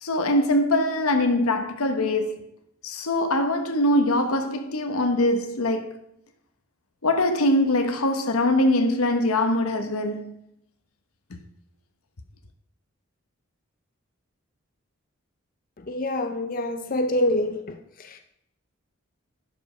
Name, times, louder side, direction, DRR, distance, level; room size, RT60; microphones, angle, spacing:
voice 1, 0.0-2.5 2.8-6.0 7.0-10.3 11.3-11.4, left 1 dB, 85° left, 1.1 m, -23 dB
voice 2, 15.9-17.6, left 1 dB, 40° left, 0.5 m, -25 dB
11.0 x 5.2 x 5.0 m
head